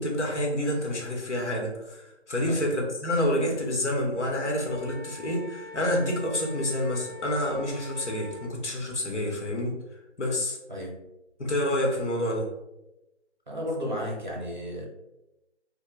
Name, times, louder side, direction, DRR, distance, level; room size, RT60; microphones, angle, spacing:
voice 1, 0.0-10.6 11.4-12.5, left 1 dB, 85° left, -1 dB, 1.0 m, -28 dB
Wind instrument woodwind instrument, 4.6-8.5, left 3 dB, 65° left, 0.5 m, -44 dB
voice 2, 10.7-11.0 13.5-14.9, equal, 45° right, -2 dB, 0.6 m, -33 dB
2.3 x 2.1 x 3.1 m, 0.94 s
figure-of-eight pair, 175°, 34 cm